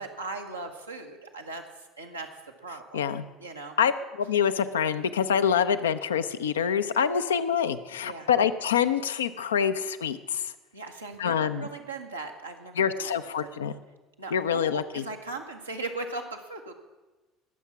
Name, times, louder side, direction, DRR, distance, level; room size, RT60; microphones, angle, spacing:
voice 1, 0.0-2.3 2.6-3.1 3.4-3.8 8.0-8.3 10.7-13.5 14.2-16.7, right 3 dB, 90° right, 2 dB, 1.2 m, -39 dB
voice 2, 2.9-3.2 3.8-10.5 11.2-11.7 12.8-13.7 14.3-15.0, left 7 dB, 80° left, 10 dB, 0.6 m, -26 dB
20.5 x 7.3 x 5.9 m, 1.2 s
figure-of-eight pair, 65°, 0 cm